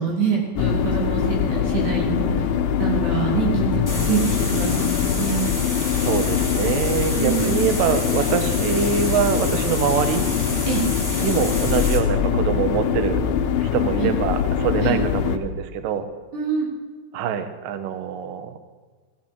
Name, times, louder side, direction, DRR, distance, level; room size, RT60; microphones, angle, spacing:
voice 1, 0.0-2.4 2.8-5.4 7.1-7.8 10.7-10.9 14.0-14.1 14.8-15.0 16.3-16.7, right 6 dB, 60° right, -3 dB, 5.9 m, -25 dB
sound 1, 0.6-15.4, left 8 dB, 75° left, 3.2 m, -23 dB
sound 2, 3.8-12.0, left 2 dB, 5° left, 2.0 m, -30 dB
voice 2, 5.9-10.3 11.2-13.2 13.6-16.1 17.1-18.6, right 8 dB, 75° right, 9 dB, 2.0 m, -24 dB
18.0 x 15.5 x 4.8 m, 1.4 s
omnidirectional pair, 5.8 m